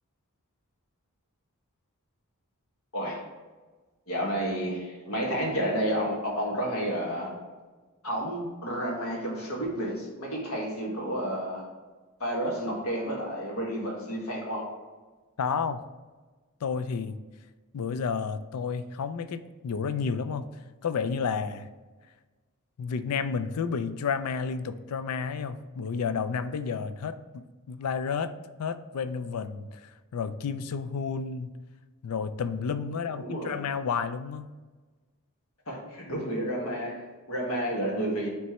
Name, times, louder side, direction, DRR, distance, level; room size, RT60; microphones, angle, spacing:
voice 1, 2.9-3.2 4.1-7.4 8.0-11.7 12.2-14.7 33.2-33.6 35.7-38.3, equal, 70° left, -2 dB, 1.6 m, -31 dB
voice 2, 15.4-15.9 16.6-17.2 17.7-20.5 20.8-21.7 22.8-28.3 28.6-31.5 32.0-34.5, left 5 dB, 85° left, 11 dB, 0.4 m, -31 dB
9.2 x 3.3 x 3.1 m, 1.3 s
head